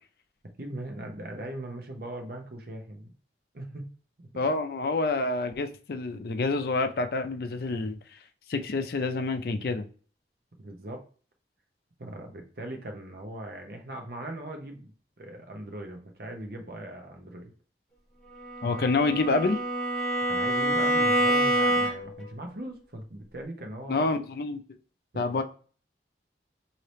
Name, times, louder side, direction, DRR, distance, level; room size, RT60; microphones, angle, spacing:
voice 1, 0.6-3.1 3.5-3.9 4.2-4.3 10.6-11.0 12.0-17.5 18.7-18.8 20.3-24.1 25.1-25.4, right 1 dB, 55° right, 3 dB, 0.8 m, -40 dB
voice 2, 4.4-8.2 8.5-9.9 18.6-19.6 23.9-24.6 25.1-25.4, left 3 dB, 60° left, 7 dB, 0.4 m, -27 dB
Bowed string instrument, 18.4-22.3, right 1 dB, ahead, 1.1 m, -26 dB
3.3 x 2.8 x 4.1 m, 0.40 s
head